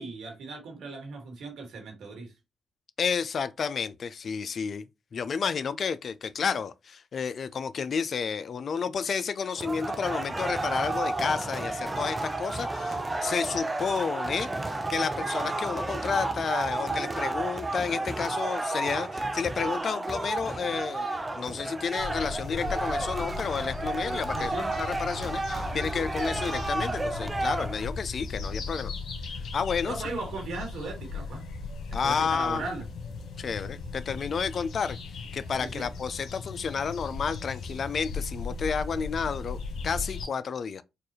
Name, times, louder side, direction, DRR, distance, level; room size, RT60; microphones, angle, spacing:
voice 1, 0.0-2.3 24.3-24.8 29.9-31.5 31.9-32.8 35.6-35.9, right 3 dB, 85° right, 1.8 m, -37 dB
voice 2, 3.0-4.9 5.1-14.5 14.9-21.1 21.4-28.9 29.5-29.9 31.9-32.6 33.4-35.0 35.3-40.8, left 6 dB, 60° left, 0.3 m, -31 dB
sound 1, 9.6-27.9, right 2 dB, 20° right, 0.6 m, -32 dB
sound 2, 22.0-40.3, left 4 dB, 80° left, 1.2 m, -37 dB
4.5 x 2.4 x 3.0 m
cardioid pair, 75°, 0 cm